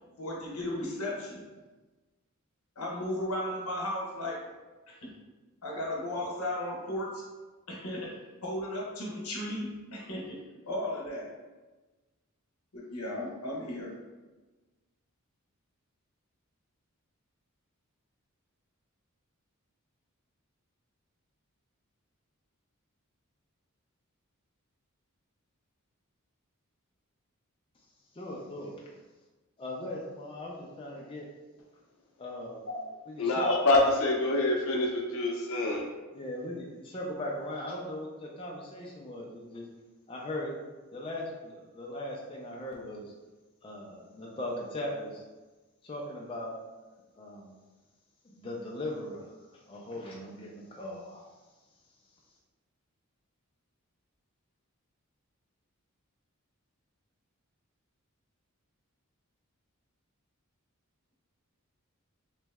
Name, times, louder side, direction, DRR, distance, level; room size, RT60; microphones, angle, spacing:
voice 1, 0.2-1.4 2.8-4.5 4.9-5.1 5.6-7.2 7.7-8.1 8.4-10.4 10.6-11.3 12.7-13.9, left 1 dB, 90° left, -2 dB, 1.1 m, -35 dB
voice 2, 28.1-28.7 29.6-31.3 32.2-32.7 33.1-33.4 36.1-39.6 40.1-40.6 40.9-43.1 43.6-45.2 45.8-46.5 47.2-47.5 48.2-49.2 49.7-51.2, left 1 dB, 25° left, -3 dB, 0.5 m, -39 dB
voice 3, 33.2-35.8, left 2 dB, 65° left, -1 dB, 0.7 m, -26 dB
3.2 x 3.0 x 3.5 m, 1.2 s
head